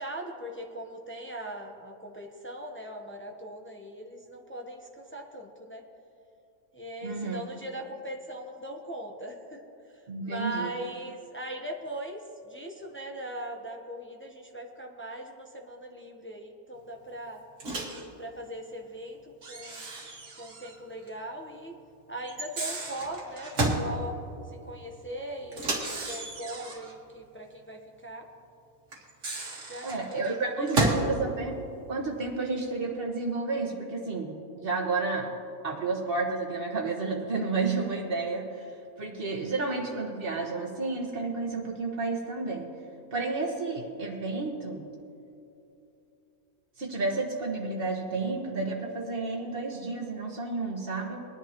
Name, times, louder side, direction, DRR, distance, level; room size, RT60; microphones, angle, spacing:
voice 1, 0.0-5.8 6.7-9.6 10.2-17.4 18.2-19.8 20.4-21.8 22.1-24.2 24.5-28.3 29.7-30.7, right 1 dB, 10° left, 1 dB, 0.7 m, -40 dB
voice 2, 7.0-7.4 10.1-10.7 29.8-31.5 31.9-35.3 35.6-42.7 43.1-44.8 46.8-51.2, right 3 dB, 40° right, 0 dB, 1.5 m, -31 dB
Microwave oven, 17.6-18.1 19.4-20.8 21.1-21.2 22.3-23.9 25.5-26.9 28.9-31.1, right 2 dB, 55° right, 1.9 m, -32 dB
21.0 x 10.5 x 3.0 m, 2.7 s
omnidirectional pair, 1.5 m